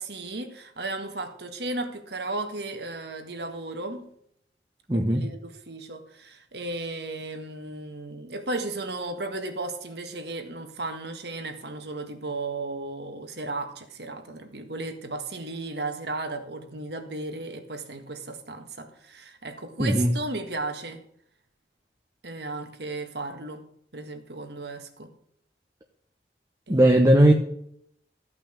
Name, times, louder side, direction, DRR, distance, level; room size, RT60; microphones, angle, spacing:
voice 1, 0.0-4.1 4.9-21.0 22.2-23.6 23.9-25.1 26.7-27.0, right 2 dB, 65° right, 5 dB, 1.9 m, -35 dB
voice 2, 4.9-5.2 19.8-20.1 26.7-27.3, right 1 dB, 20° right, 3 dB, 1.0 m, -18 dB
14.0 x 5.9 x 7.3 m, 0.69 s
head